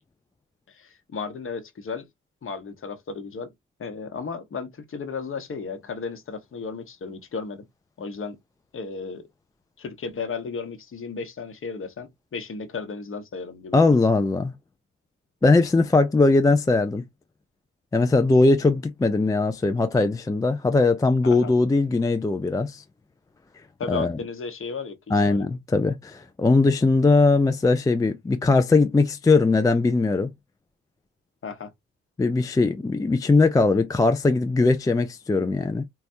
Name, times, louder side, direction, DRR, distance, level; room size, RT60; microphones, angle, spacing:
voice 1, 0.7-2.1 2.4-3.5 3.8-7.7 8.0-8.4 8.7-9.3 9.8-14.0 21.2-21.5 23.8-25.4 31.4-31.7, left 5 dB, 35° left, 1.0 m, -34 dB
voice 2, 13.7-14.5 15.4-17.0 17.9-22.8 23.9-24.2 25.1-30.3 32.2-35.8, left 3 dB, 10° left, 0.4 m, -20 dB
4.2 x 2.3 x 2.6 m
figure-of-eight pair, 45°, 36 cm